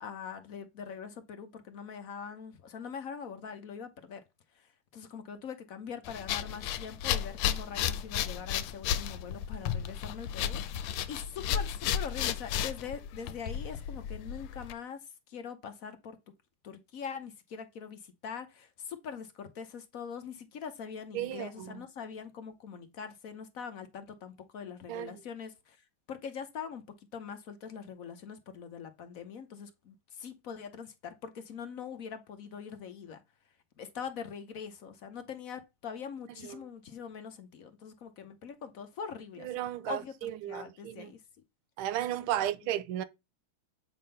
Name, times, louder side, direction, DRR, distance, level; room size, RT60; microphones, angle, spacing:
voice 1, 0.0-4.2 4.6-4.7 4.9-15.0 15.3-16.2 16.6-25.8 26.1-26.8 27.1-33.2 33.8-39.5 39.9-41.2, left 6 dB, 60° left, 0.9 m, -43 dB
sound 1, 6.0-14.7, left 9 dB, 85° left, 1.5 m, -33 dB
voice 2, 21.1-21.8 24.9-25.2 36.4-36.7 39.4-41.1 41.8-43.0, right 12 dB, 80° right, 1.5 m, -34 dB
8.6 x 3.6 x 5.5 m
omnidirectional pair, 2.4 m